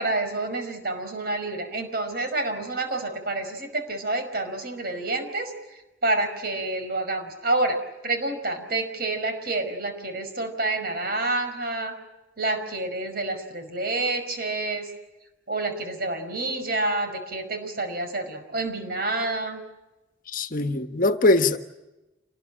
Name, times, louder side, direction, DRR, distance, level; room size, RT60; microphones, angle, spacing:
voice 1, 0.0-5.5 6.0-7.8 8.0-12.0 12.4-14.9 15.5-19.6, right 2 dB, 55° right, 5.2 m, -28 dB
voice 2, 20.3-21.6, left 2 dB, 50° left, 1.4 m, -21 dB
28.0 x 20.0 x 9.0 m
head